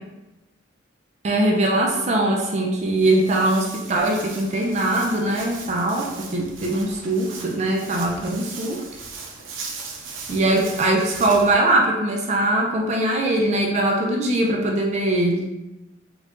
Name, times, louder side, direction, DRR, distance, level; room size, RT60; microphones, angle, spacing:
voice 1, 1.2-8.8 10.3-15.5, right 1 dB, 35° right, 0 dB, 0.3 m, -21 dB
Walk footsteps, 2.8-11.5, right 4 dB, 85° right, 0.6 m, -38 dB
4.5 x 2.4 x 2.4 m, 1.0 s
head